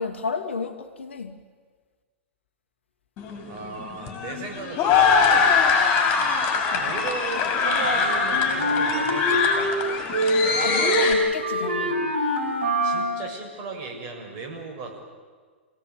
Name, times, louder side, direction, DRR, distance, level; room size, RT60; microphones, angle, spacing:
voice 1, 0.0-1.3 6.7-6.9 10.6-12.1, left 4 dB, 75° left, 5 dB, 2.7 m, -31 dB
sound 1, 3.2-11.1, left 5 dB, 35° left, 6.2 m, -23 dB
voice 2, 3.5-5.6 6.7-9.8 12.8-15.0, right 3 dB, 40° right, 3 dB, 7.2 m, -36 dB
Wind instrument woodwind instrument, 7.6-9.8 10.1-13.2, equal, 70° right, 5.1 m, -25 dB
28.0 x 18.0 x 9.8 m, 1.5 s
figure-of-eight pair, 105°, 6 cm